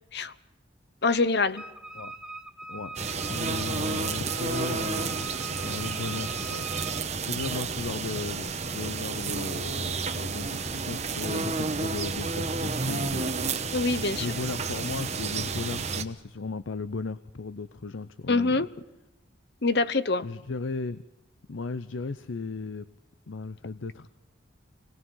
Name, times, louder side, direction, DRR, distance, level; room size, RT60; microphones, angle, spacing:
voice 1, 1.0-1.6 13.7-14.3 18.3-18.7 19.6-20.2, left 3 dB, 55° left, 14 dB, 0.9 m, -24 dB
Wind instrument woodwind instrument, 1.6-7.1, right 2 dB, 5° right, 0.6 m, -42 dB
sound 1, 3.0-16.0, right 4 dB, 35° right, 1.1 m, -31 dB
voice 2, 3.3-5.3 5.6-6.6 7.2-13.8 14.2-18.6 20.2-21.0 21.5-22.9 23.3-24.1, left 3 dB, 75° left, 14 dB, 0.7 m, -36 dB
26.0 x 19.5 x 5.6 m, 0.94 s
head